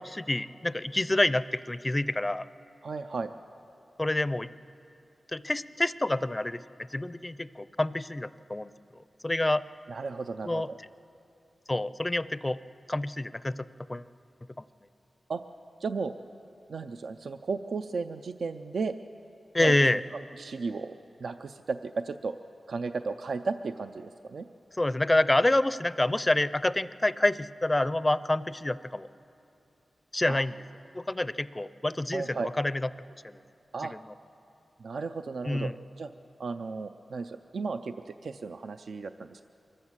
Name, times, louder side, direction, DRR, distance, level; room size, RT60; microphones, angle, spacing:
voice 1, 0.0-2.5 4.0-4.5 5.3-6.6 6.9-8.7 9.2-9.6 10.4-10.7 11.7-12.6 12.9-14.0 19.5-20.0 24.8-29.1 30.1-30.6 30.9-32.9 33.2-33.4 33.8-34.0 35.5-35.7, left 1 dB, 20° left, 16 dB, 0.4 m, -27 dB
voice 2, 2.8-3.3 9.9-10.8 15.3-15.4 15.8-16.2 16.7-18.9 19.6-20.0 20.4-22.4 22.7-24.5 30.3-30.4 32.1-32.5 33.7-34.0 34.8-36.1 36.4-39.4, right 4 dB, 75° right, 9 dB, 0.5 m, -34 dB
24.5 x 14.5 x 7.4 m, 2.7 s
wide cardioid pair, 100°, 0 cm